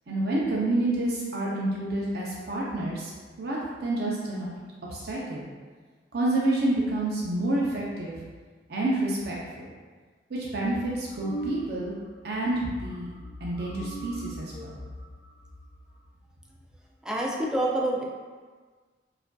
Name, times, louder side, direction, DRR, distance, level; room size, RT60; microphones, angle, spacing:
voice 1, 0.1-3.1 3.4-4.5 4.9-5.5 6.1-8.2 8.7-9.7 10.3-11.9 12.2-13.1 13.4-14.8, right 1 dB, 60° right, -5 dB, 0.6 m, -28 dB
sound 1, 11.1-12.1 12.3-12.6 12.9-16.1, right 1 dB, 60° left, 0.5 m, -39 dB
voice 2, 17.0-18.0, right 1 dB, 5° right, -3 dB, 0.4 m, -27 dB
4.7 x 2.5 x 2.2 m, 1.5 s
head